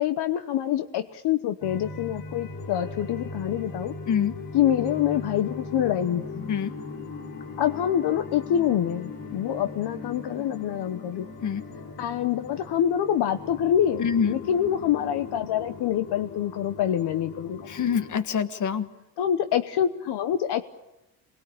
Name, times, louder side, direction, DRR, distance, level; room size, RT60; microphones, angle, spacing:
voice 1, 0.0-3.9 4.5-6.5 7.6-11.3 12.0-17.7 19.2-20.6, left 10 dB, 65° left, 9 dB, 1.1 m, -26 dB
sound 1, 1.6-18.2, left 4 dB, 85° left, 4.5 m, -39 dB
voice 2, 4.1-4.4 6.5-6.7 11.4-11.6 14.0-14.4 17.7-18.9, left 7 dB, 45° left, 10 dB, 1.6 m, -25 dB
27.0 x 20.5 x 8.7 m, 0.91 s
cardioid pair, 135°, 43 cm